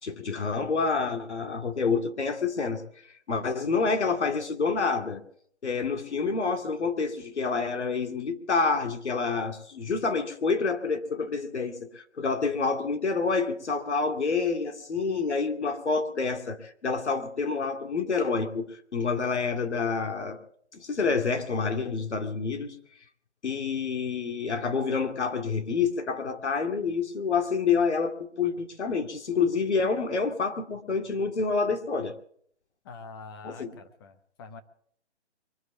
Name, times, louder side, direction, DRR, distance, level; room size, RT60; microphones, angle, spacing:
voice 1, 0.0-2.8 3.3-5.2 5.6-20.4 20.7-22.8 23.4-32.1 33.4-33.7, left 4 dB, 75° left, 7 dB, 2.4 m, -28 dB
voice 2, 32.8-34.6, left 4 dB, 20° left, 8 dB, 0.9 m, -45 dB
23.5 x 8.0 x 7.0 m, 0.64 s
hypercardioid pair, 150°, 34 cm